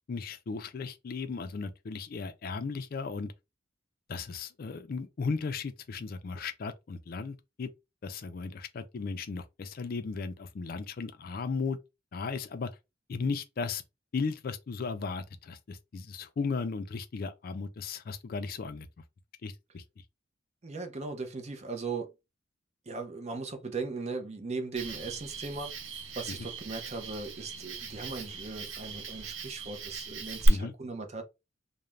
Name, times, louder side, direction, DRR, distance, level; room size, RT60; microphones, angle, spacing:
voice 1, 0.1-3.3 4.1-7.7 8.0-11.8 12.1-12.7 13.1-13.8 14.1-18.9 19.4-19.8 30.5-30.7, left 4 dB, 50° left, 0.4 m, -36 dB
voice 2, 20.6-22.1 22.9-25.7 26.2-31.2, right 4 dB, 35° right, 0.5 m, -38 dB
Cricket, 24.8-30.5, right 3 dB, 90° right, 0.6 m, -39 dB
2.4 x 2.1 x 3.1 m
head